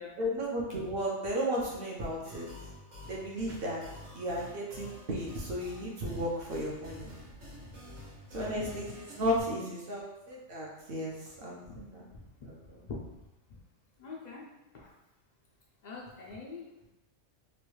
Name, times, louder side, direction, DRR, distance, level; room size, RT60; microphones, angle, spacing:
voice 1, 0.2-2.5 3.1-3.8 4.1-7.1 8.3-12.1 12.4-12.8, equal, 55° right, -3 dB, 0.7 m, -34 dB
sound 1, 2.2-9.4, left 1 dB, 85° right, 1.4 m, -48 dB
voice 2, 14.0-14.9 15.8-16.7, left 4 dB, 85° left, -3 dB, 0.3 m, -46 dB
3.0 x 2.3 x 3.1 m, 0.95 s
omnidirectional pair, 1.3 m